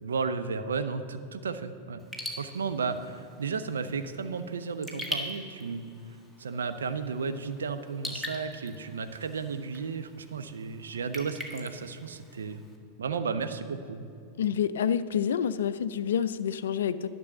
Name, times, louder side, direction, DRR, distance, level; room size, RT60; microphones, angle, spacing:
voice 1, 0.0-2.0 2.4-5.9 6.4-12.6 13.0-14.1, right 5 dB, 70° right, 9 dB, 0.6 m, -33 dB
Raindrop / Drip, 2.0-12.8, left 1 dB, 5° right, 1.5 m, -43 dB
voice 2, 14.4-17.1, left 8 dB, 65° left, 14 dB, 0.4 m, -28 dB
11.5 x 6.1 x 6.8 m, 2.6 s
figure-of-eight pair, 90°, 0 cm